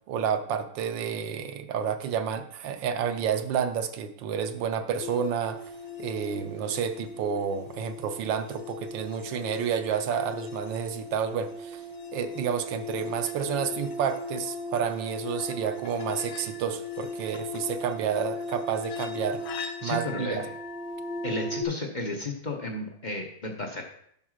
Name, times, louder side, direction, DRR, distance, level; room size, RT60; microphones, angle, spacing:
voice 1, 0.1-5.6 6.0-11.8 12.1-19.4 19.8-20.5, right 7 dB, 70° right, 9 dB, 1.3 m, -30 dB
sound 1, 5.0-21.6, left 2 dB, 70° left, 1.5 m, -37 dB
voice 2, 19.8-20.5 21.2-23.8, left 2 dB, 50° left, 1 dB, 0.5 m, -33 dB
9.7 x 4.1 x 6.4 m, 0.70 s
omnidirectional pair, 2.3 m